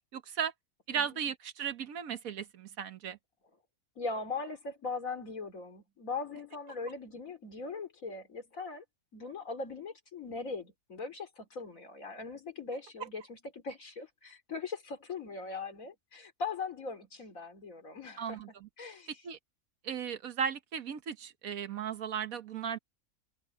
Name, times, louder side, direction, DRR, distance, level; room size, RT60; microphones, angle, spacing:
voice 1, 0.1-0.5 0.9-3.2 13.0-13.1 18.2-18.7 19.2-19.4 19.8-22.8, right 7 dB, 70° right, 1.5 m, -36 dB
voice 2, 4.0-8.8 9.1-18.4 18.8-19.1, left 4 dB, 65° left, 3.5 m, -40 dB
omnidirectional pair, 1.5 m